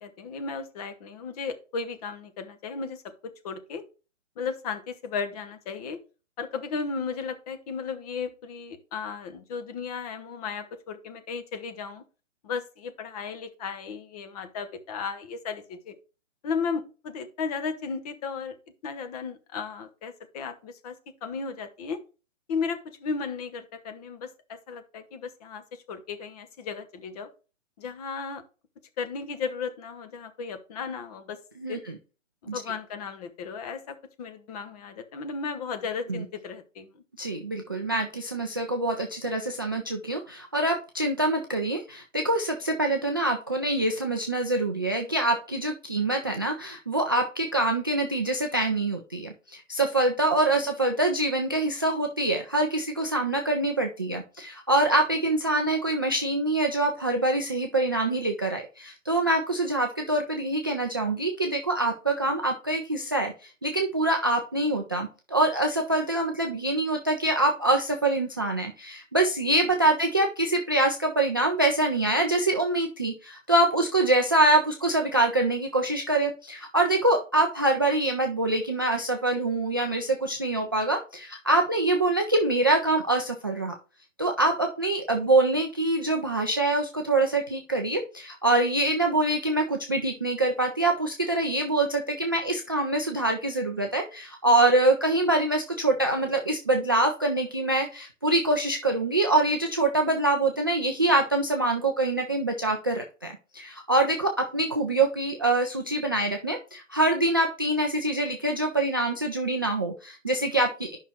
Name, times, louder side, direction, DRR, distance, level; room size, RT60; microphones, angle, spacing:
voice 1, 0.0-3.8 4.4-6.0 6.4-12.0 12.4-15.9 16.4-18.5 18.8-21.0 21.2-22.0 22.5-27.3 27.8-28.4 29.0-31.4 31.7-31.8 32.4-37.0 50.5-50.6 85.2-85.3, left 5 dB, 30° left, 9 dB, 1.1 m, -35 dB
voice 2, 37.2-83.7 84.2-111.0, right 2 dB, 20° right, 3 dB, 0.3 m, -25 dB
9.9 x 5.6 x 3.1 m, 0.33 s
figure-of-eight pair, 135°, 38 cm